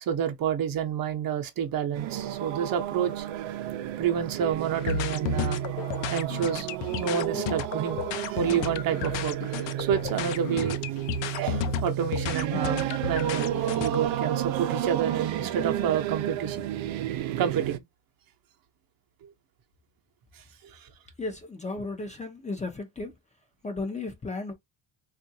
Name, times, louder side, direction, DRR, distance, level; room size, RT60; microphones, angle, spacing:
voice 1, 0.0-3.3 4.0-5.6 6.1-9.4 9.8-10.8 11.3-16.7 17.4-17.8 19.2-19.3 20.4-20.9, right 8 dB, 50° right, 0.8 m, -29 dB
sound 1, 1.9-17.8, right 12 dB, 90° right, 0.6 m, -32 dB
sound 2, 4.7-14.0, left 7 dB, 75° left, 0.6 m, -33 dB
voice 2, 21.2-23.1 23.6-24.5, left 3 dB, 15° left, 0.5 m, -34 dB
3.6 x 2.5 x 2.7 m
cardioid pair, 140°, 45 cm